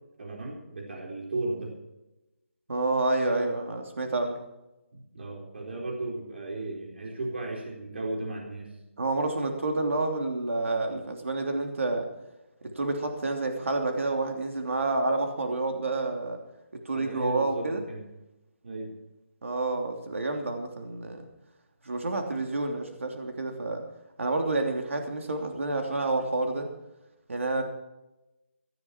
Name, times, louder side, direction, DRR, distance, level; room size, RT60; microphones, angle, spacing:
voice 1, 0.2-1.7 4.9-8.7 16.9-18.0 18.6-18.9, right 2 dB, 55° right, 0 dB, 4.2 m, -35 dB
voice 2, 2.7-4.4 9.0-12.1 12.8-16.4 16.8-17.8 19.4-21.2 21.8-23.9 24.2-26.7 27.3-27.6, right 2 dB, 70° right, 3 dB, 3.1 m, -29 dB
16.5 x 13.5 x 4.6 m, 0.97 s
hypercardioid pair, 170°, 7 cm